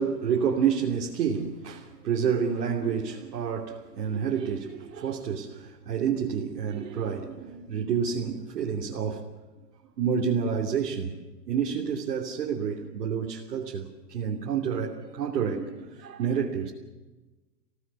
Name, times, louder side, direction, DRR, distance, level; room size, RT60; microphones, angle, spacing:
voice 1, 0.0-9.3 10.0-11.1 11.5-16.7, right 7 dB, 70° right, 3.0 m, -29 dB
26.5 x 17.0 x 8.2 m
hypercardioid pair, 120°, 48 cm